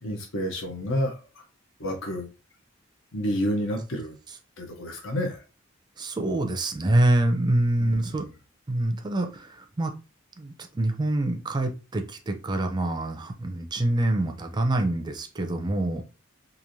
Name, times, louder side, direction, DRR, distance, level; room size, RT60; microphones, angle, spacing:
voice 1, 0.0-1.2 1.8-2.3 3.1-4.2 4.6-5.4 7.8-8.2, equal, 65° left, 2 dB, 0.8 m, -29 dB
voice 2, 6.0-8.3 8.7-9.9 10.4-16.0, right 1 dB, 20° right, 5 dB, 0.5 m, -26 dB
3.1 x 2.5 x 2.5 m, 0.31 s
head